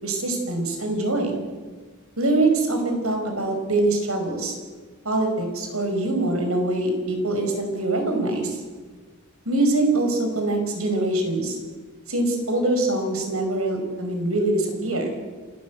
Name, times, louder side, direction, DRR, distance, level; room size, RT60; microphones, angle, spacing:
voice 1, 0.0-1.4 2.2-4.6 5.1-8.6 9.5-11.6 12.1-15.2, right 2 dB, 80° right, 4 dB, 5.3 m, -24 dB
27.5 x 13.5 x 8.2 m, 1.4 s
head